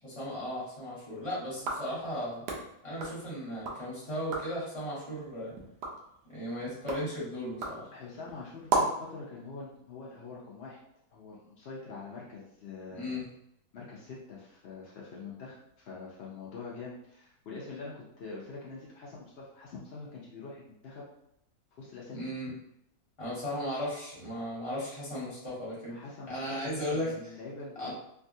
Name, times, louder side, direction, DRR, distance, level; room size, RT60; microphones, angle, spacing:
voice 1, 0.0-2.4 2.8-5.5 6.3-7.9 12.9-13.3 22.1-22.5 23.2-26.0 26.3-27.1 27.8-27.9, equal, 25° left, -7 dB, 1.0 m, -36 dB
sound 1, 1.5-3.8 4.2-4.6 5.1-9.1, right 3 dB, 80° right, 1.2 m, -36 dB
voice 2, 7.9-10.8 11.1-13.2 13.7-21.1 21.8-22.4 25.9-27.9, left 4 dB, 80° left, -5 dB, 0.5 m, -44 dB
3.4 x 2.3 x 2.6 m, 0.77 s
omnidirectional pair, 1.7 m